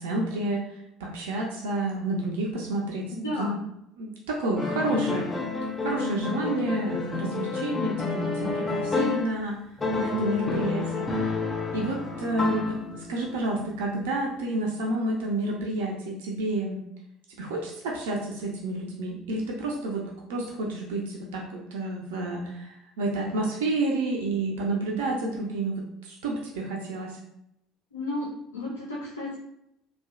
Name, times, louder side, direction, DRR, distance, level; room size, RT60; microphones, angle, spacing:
voice 1, 0.0-3.5 4.0-5.3 5.8-9.5 10.0-11.3 11.7-16.8 17.4-27.2, right 2 dB, 65° right, -1 dB, 0.3 m, -30 dB
voice 2, 3.1-3.6 27.9-28.3 28.5-29.4, left 1 dB, 80° left, -4 dB, 0.4 m, -32 dB
sound 1, 4.6-9.4 9.8-13.2, left 4 dB, 20° left, 0.4 m, -29 dB
2.6 x 2.1 x 2.3 m, 0.79 s
figure-of-eight pair, 60°, 0 cm